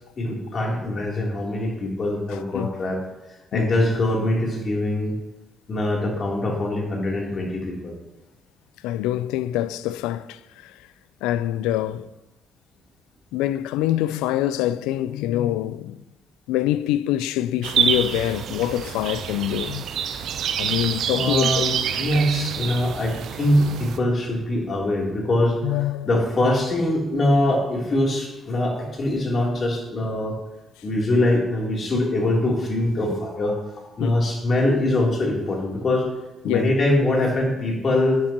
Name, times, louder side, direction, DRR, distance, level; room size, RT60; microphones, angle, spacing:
voice 1, 0.2-3.0 3.5-5.2 5.7-7.9 21.1-25.6 26.0-30.4 30.8-33.6 34.0-36.1 36.4-38.2, left 1 dB, 50° left, 3.2 m, -23 dB
voice 2, 8.8-10.7 11.2-12.1 13.3-16.0 16.5-19.8 20.6-21.5 25.6-26.1 34.0-34.1 36.4-36.6, left 13 dB, 85° left, 0.3 m, -25 dB
sound 1, 17.6-24.0, right 8 dB, 70° right, 0.6 m, -27 dB
11.5 x 9.7 x 3.0 m
supercardioid pair, 55°, 0 cm